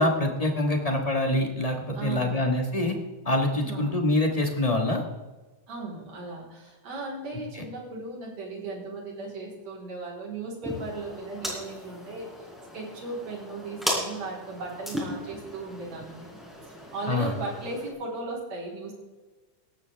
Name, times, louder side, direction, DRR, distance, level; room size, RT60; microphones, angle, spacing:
voice 1, 0.0-3.0 3.2-5.0 7.5-7.6 17.1-17.3, left 1 dB, 30° left, 3 dB, 0.6 m, -25 dB
voice 2, 1.9-2.5 3.7-4.0 5.7-18.9, right 3 dB, 60° right, -3 dB, 5.1 m, -37 dB
sound 1, 10.6-17.9, equal, ahead, 4.2 m, -37 dB
17.5 x 13.5 x 3.5 m, 1.2 s
omnidirectional pair, 3.5 m